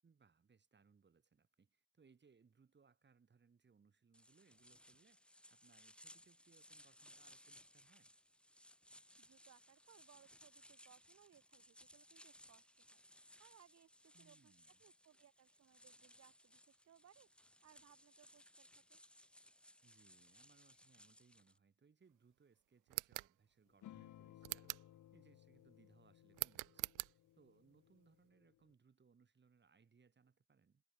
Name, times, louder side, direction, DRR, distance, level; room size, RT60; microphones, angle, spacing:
voice 1, 0.0-8.1 14.1-14.8 19.8-30.8, right 5 dB, 35° right, 6.6 m, -71 dB
sound 1, 4.1-21.6, left 1 dB, 5° left, 2.2 m, -64 dB
voice 2, 9.2-19.0, right 10 dB, 55° right, 2.0 m, -68 dB
sound 2, 22.9-23.3 24.4-24.9 26.3-27.1, right 21 dB, 90° right, 0.5 m, -43 dB
sound 3, 23.8-28.7, left 13 dB, 75° left, 2.2 m, -61 dB
cardioid pair, 90°, 30 cm